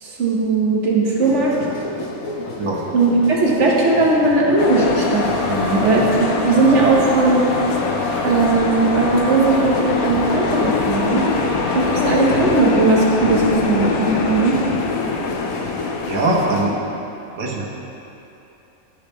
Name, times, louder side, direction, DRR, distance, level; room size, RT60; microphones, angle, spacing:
voice 1, 0.0-1.5 2.9-7.4 8.2-11.3 11.7-14.6, right 3 dB, 55° right, -3 dB, 1.3 m, -18 dB
sound 1, 1.2-16.8, left 2 dB, 70° left, 1.2 m, -31 dB
sound 2, 4.6-16.6, left 5 dB, 90° left, 1.1 m, -23 dB
sound 3, 4.7-12.6, right 1 dB, 30° right, 1.4 m, -34 dB
voice 2, 16.0-16.7 17.4-17.6, right 2 dB, 80° right, -2 dB, 1.4 m, -21 dB
11.5 x 5.0 x 3.1 m, 2.9 s
omnidirectional pair, 1.5 m